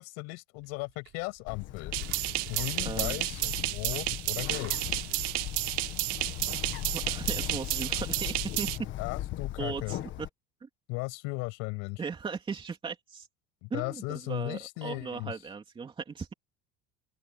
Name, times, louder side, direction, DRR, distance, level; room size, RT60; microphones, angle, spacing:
voice 1, 0.0-1.9 2.5-4.8 9.0-10.0 10.9-12.0 13.6-15.4, left 27 dB, 70° left, 6.5 m, -36 dB
Engine, 0.6-6.7, right 14 dB, 45° right, 6.4 m, -52 dB
Bird, 1.5-10.3, left 13 dB, 40° left, 1.5 m, -38 dB
sound 1, 1.9-8.8, right 21 dB, 75° right, 1.8 m, -32 dB
voice 2, 2.8-3.2 7.1-8.7 9.6-10.3 10.6-10.7 12.0-13.3 13.7-16.3, right 5 dB, 15° right, 3.0 m, -37 dB
open air
cardioid pair, 165°, 29 cm